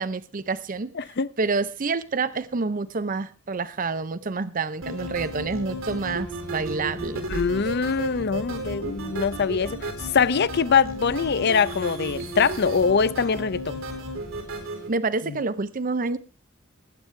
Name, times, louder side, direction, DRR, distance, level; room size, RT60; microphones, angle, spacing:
voice 1, 0.0-7.3 14.9-16.2, right 4 dB, 40° right, 0.6 m, -28 dB
voice 2, 1.0-1.3 7.3-13.8 15.3-15.4, left 5 dB, 55° left, 0.6 m, -23 dB
sound 1, 4.8-14.9, right 1 dB, 90° right, 4.0 m, -34 dB
sound 2, 5.1-14.6, equal, 75° left, 2.8 m, -42 dB
19.5 x 9.0 x 3.3 m
head